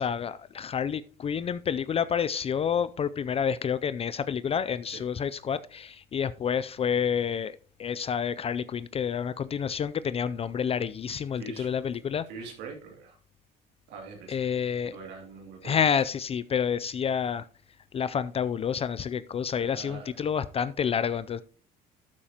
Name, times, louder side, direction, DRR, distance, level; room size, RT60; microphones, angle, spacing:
voice 1, 0.0-12.2 14.3-15.0 15.6-17.5 17.9-21.4, left 7 dB, 35° left, 0.4 m, -29 dB
voice 2, 11.4-11.7 12.3-13.2 13.9-14.4 14.8-15.7 19.5-20.1, right 4 dB, 85° right, 2.7 m, -43 dB
12.0 x 8.8 x 2.9 m
cardioid pair, 110°, 17 cm